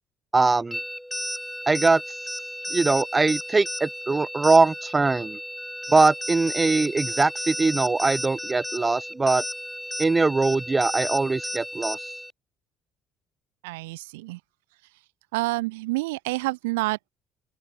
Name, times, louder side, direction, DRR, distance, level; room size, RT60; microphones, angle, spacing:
voice 1, 0.3-0.8 1.7-2.2 2.7-5.4 5.9-9.4 10.0-12.1, right 3 dB, 20° right, 0.4 m, -22 dB
sound 1, 0.7-12.3, equal, ahead, 2.9 m, -33 dB
voice 2, 13.6-14.4 15.3-17.1, right 22 dB, 75° right, 1.3 m, -28 dB
open air
hypercardioid pair, 55°, 0 cm